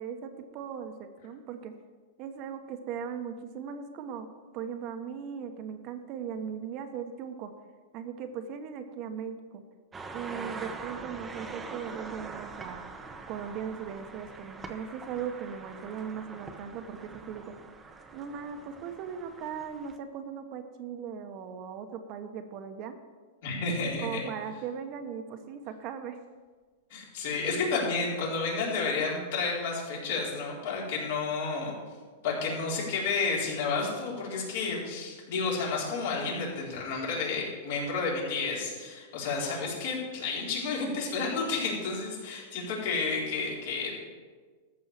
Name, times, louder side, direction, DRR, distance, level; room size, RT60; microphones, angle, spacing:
voice 1, 0.0-1.7 2.2-4.3 4.5-7.5 7.9-9.6 10.1-12.9 13.3-17.5 18.1-22.9 24.0-26.2, right 7 dB, 40° right, 7 dB, 1.1 m, -38 dB
sound 1, 9.9-20.0, right 4 dB, 15° right, 0.9 m, -44 dB
voice 2, 23.4-24.2 26.9-31.7 32.2-43.9, left 4 dB, 65° left, -3 dB, 4.3 m, -31 dB
13.5 x 5.5 x 7.4 m, 1.4 s
supercardioid pair, 145°, 0 cm